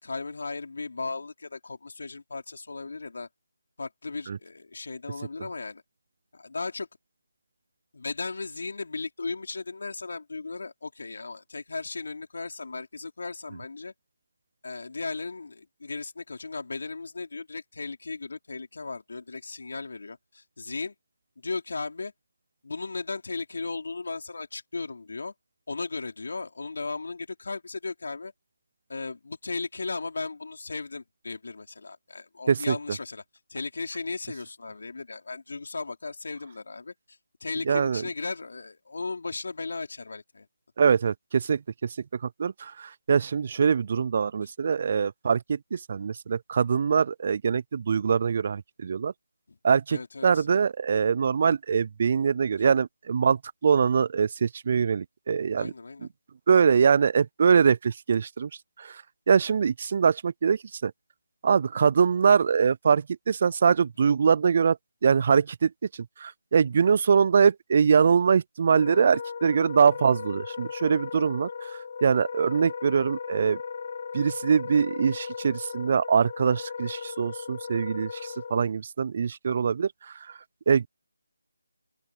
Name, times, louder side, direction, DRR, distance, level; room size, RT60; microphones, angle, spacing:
voice 1, 0.0-3.3 3.8-5.8 6.3-6.9 7.9-13.9 14.6-20.9 21.4-22.1 22.6-25.3 25.7-28.3 28.9-33.2 33.5-36.9 37.4-40.5 44.4-44.5 49.5-49.6 49.9-50.5 52.6-52.7 55.5-56.1, left 3 dB, 65° left, 4.5 m, -36 dB
voice 2, 37.7-38.0 40.8-41.6 42.4-49.1 49.6-53.4 53.6-55.7 56.5-58.5 58.8-58.9 59.3-60.9 61.4-64.8 65.0-65.7 66.2-71.5 72.0-73.6 74.1-79.9 80.7-80.9, right 6 dB, 40° right, 0.4 m, -23 dB
Wind instrument woodwind instrument, 68.6-78.7, left 6 dB, 40° left, 1.0 m, -37 dB
open air
figure-of-eight pair, 160°, 0 cm